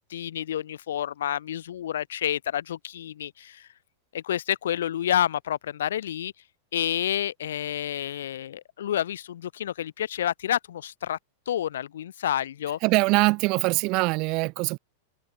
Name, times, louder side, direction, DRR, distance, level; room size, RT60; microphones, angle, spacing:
voice 1, 0.1-3.7 4.1-6.3 6.7-11.2 11.4-12.8, left 11 dB, 90° left, 3.4 m, -29 dB
voice 2, 12.8-14.8, right 26 dB, 40° right, 0.6 m, -23 dB
supercardioid pair, 155°, 0 cm